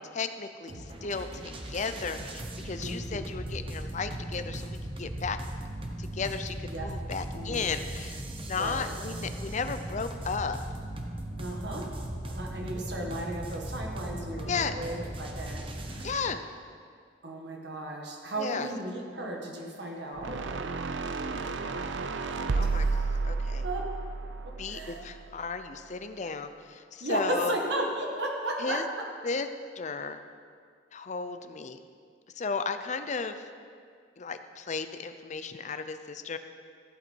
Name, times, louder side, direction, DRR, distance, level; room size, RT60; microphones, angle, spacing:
voice 1, 0.0-5.4 6.0-10.6 14.5-14.7 16.0-16.4 18.4-18.7 21.4-22.0 22.5-23.6 24.6-27.6 28.6-28.9 29.2-29.5 29.8-30.2 30.9-31.8 32.3-33.5 34.2-36.4, left 5 dB, 40° left, 9 dB, 0.6 m, -35 dB
sound 1, 0.7-16.1, right 1 dB, 30° right, 1.0 m, -38 dB
voice 2, 2.8-3.3 6.6-6.9 7.3-7.6 8.5-8.9 11.4-11.9 12.2-16.2 17.2-20.4 22.6-22.7 23.6-23.8 24.4-25.0 27.0-29.0, right 1 dB, 65° right, -1 dB, 1.8 m, -35 dB
sound 2, 20.2-25.4, right 3 dB, 85° right, 0.6 m, -31 dB
15.0 x 8.0 x 4.6 m, 2.1 s
head